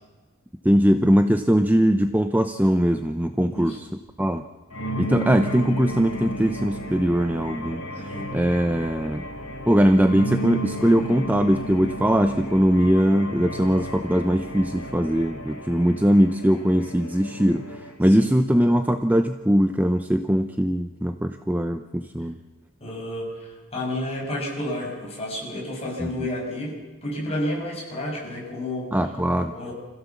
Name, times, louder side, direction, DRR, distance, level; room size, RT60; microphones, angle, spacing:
voice 1, 0.6-3.8 4.2-4.4 5.0-9.3 9.7-22.4 26.0-26.1 28.9-29.7, equal, 5° right, 7 dB, 0.6 m, -21 dB
voice 2, 3.5-3.8 7.9-8.3 18.1-18.3 22.8-28.9 29.4-29.7, left 1 dB, 25° left, -3 dB, 6.7 m, -31 dB
sound 1, 4.7-18.0, equal, 70° left, 3.3 m, -33 dB
26.0 x 16.0 x 7.3 m, 1.3 s
head